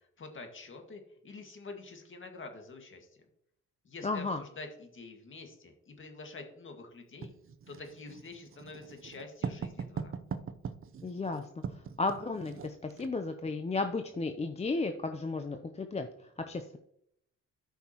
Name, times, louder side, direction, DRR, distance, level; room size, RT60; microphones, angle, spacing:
voice 1, 0.0-3.1 3.8-7.3 7.7-10.1, left 3 dB, 40° left, 4 dB, 1.9 m, -47 dB
voice 2, 4.0-4.4 11.0-11.5 12.0-16.1 16.5-16.8, left 3 dB, 20° left, 6 dB, 0.6 m, -33 dB
Writing, 7.2-13.2, right 6 dB, 45° right, 0.7 m, -41 dB
13.0 x 5.7 x 3.0 m, 0.74 s
cardioid pair, 90°, 30 cm